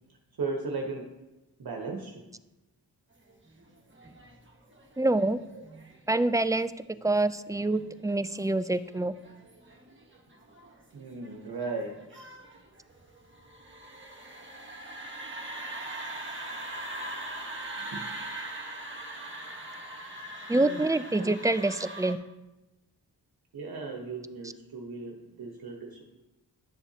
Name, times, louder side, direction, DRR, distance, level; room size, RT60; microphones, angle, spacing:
voice 1, 0.4-1.1 1.6-2.2 5.5-5.6 10.9-12.2 17.8-18.1 20.6-20.8 21.1-21.3 23.5-26.1, right 3 dB, 65° right, 1 dB, 1.2 m, -37 dB
sound 1, 3.3-22.1, right 1 dB, 30° right, 1.6 m, -42 dB
voice 2, 5.0-5.4 6.1-6.7 7.0-9.1 20.5-22.2, right 2 dB, 10° right, 14 dB, 0.3 m, -26 dB
11.5 x 7.0 x 2.8 m, 1.0 s
cardioid pair, 55°, 39 cm